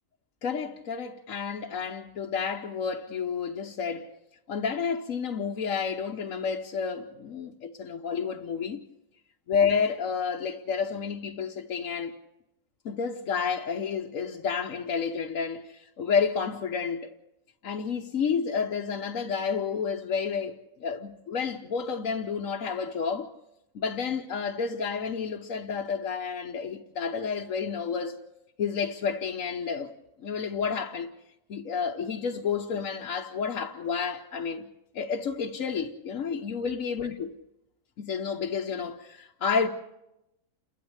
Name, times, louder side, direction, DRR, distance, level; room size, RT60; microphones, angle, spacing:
voice 1, 0.4-4.1 4.5-8.8 9.5-12.1 12.8-17.1 17.6-23.3 23.7-28.2 28.6-29.9 30.2-31.1 31.5-34.7 34.9-37.3 38.0-39.7, left 6 dB, 75° left, 1.4 m, -30 dB
29.0 x 12.5 x 8.0 m
omnidirectional pair, 1.4 m